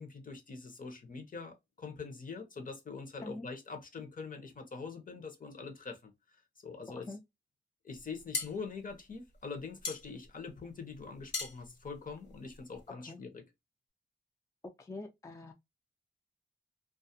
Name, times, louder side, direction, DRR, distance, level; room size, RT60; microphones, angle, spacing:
voice 1, 0.0-6.1 6.6-7.1 7.8-13.4, left 4 dB, 50° left, 0.7 m, -44 dB
sound 1, 8.0-12.9, left 3 dB, 80° left, 1.2 m, -41 dB
voice 2, 14.6-15.5, left 2 dB, 20° left, 0.3 m, -45 dB
2.3 x 2.1 x 2.6 m
wide cardioid pair, 105°, 18 cm